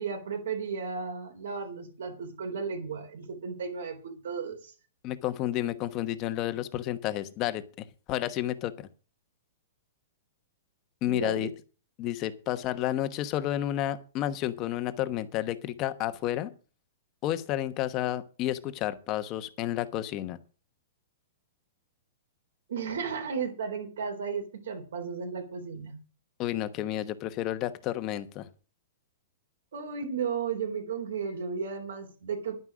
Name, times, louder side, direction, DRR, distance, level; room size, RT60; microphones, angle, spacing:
voice 1, 0.0-4.7 11.1-11.5 22.7-26.0 29.7-32.6, right 5 dB, 80° right, 3 dB, 3.9 m, -34 dB
voice 2, 5.0-8.9 11.0-11.5 12.0-16.5 17.2-20.4 26.4-28.5, left 13 dB, 25° left, 11 dB, 1.0 m, -31 dB
11.0 x 9.7 x 6.3 m, 0.37 s
hypercardioid pair, 165°, 0 cm